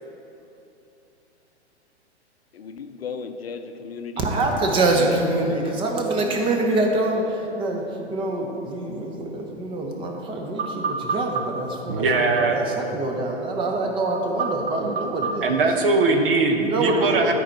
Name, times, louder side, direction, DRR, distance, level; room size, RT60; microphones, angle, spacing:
voice 1, 2.5-6.4, left 5 dB, 60° left, 7 dB, 0.6 m, -36 dB
voice 2, 4.2-7.8 8.1-10.8 11.1-15.5 16.6-17.3, right 2 dB, 15° right, 2 dB, 0.8 m, -25 dB
voice 3, 10.6-11.4 11.9-12.8 14.4-14.5 14.9-17.3, right 3 dB, 50° right, 4 dB, 1.0 m, -22 dB
12.5 x 4.7 x 4.2 m, 2.9 s
figure-of-eight pair, 115°, 34 cm